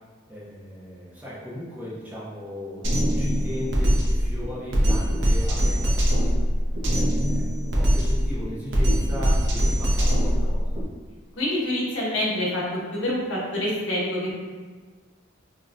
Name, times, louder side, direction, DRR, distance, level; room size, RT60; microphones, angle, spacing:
voice 1, 0.3-6.1 6.9-7.5 7.8-10.9, left 1 dB, 10° right, -8 dB, 0.7 m, -37 dB
Drum kit, 2.8-10.8, equal, 70° right, 0.8 m, -22 dB
voice 2, 11.4-12.6 12.9-14.4, left 1 dB, 75° left, -6 dB, 1.1 m, -26 dB
5.1 x 2.3 x 2.6 m, 1.4 s
head